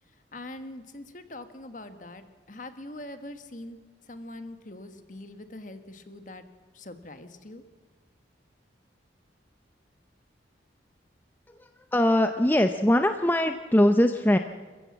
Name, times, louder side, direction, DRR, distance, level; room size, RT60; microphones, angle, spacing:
voice 1, 0.3-6.5 6.7-7.6, left 1 dB, 45° left, 9 dB, 1.5 m, -43 dB
voice 2, 11.6-14.4, left 1 dB, 10° left, 7 dB, 0.6 m, -22 dB
27.5 x 15.0 x 7.4 m, 1.4 s
head